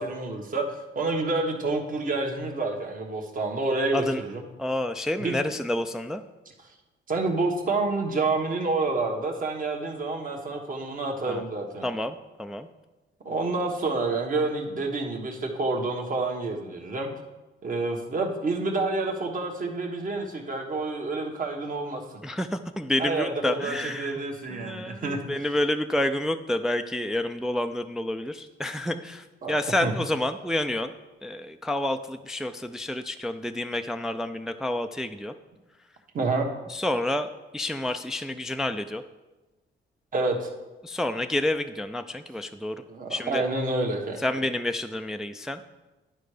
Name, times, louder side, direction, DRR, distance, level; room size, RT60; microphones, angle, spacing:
voice 1, 0.0-4.4 5.2-5.3 7.1-11.8 13.2-17.1 17.6-22.0 23.0-25.2 29.4-29.5 29.8-29.9 36.1-36.4 40.1-40.5 42.9-44.2, right 3 dB, 45° right, 2 dB, 1.3 m, -28 dB
voice 2, 4.6-6.2 11.2-11.4 11.8-12.7 22.2-24.2 24.5-30.9 31.2-35.3 36.7-39.0 40.8-42.8 43.1-43.4 44.2-45.6, left 1 dB, 5° right, 7 dB, 0.3 m, -29 dB
10.5 x 4.5 x 5.0 m, 1.1 s
cardioid pair, 90°, 20 cm